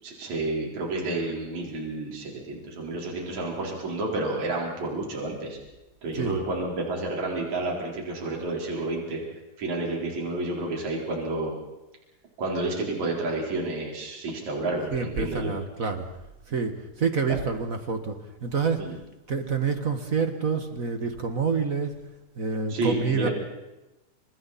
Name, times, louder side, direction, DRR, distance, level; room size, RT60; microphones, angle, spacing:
voice 1, 0.0-5.6 6.0-9.2 9.6-11.5 12.4-15.5 17.3-17.4 18.8-18.9 22.7-23.3, right 2 dB, 60° right, -1 dB, 5.5 m, -30 dB
voice 2, 14.9-16.1 16.5-19.0 19.3-21.9 22.4-23.3, right 5 dB, 40° right, 7 dB, 1.2 m, -27 dB
30.0 x 27.0 x 4.2 m, 1.0 s
omnidirectional pair, 3.6 m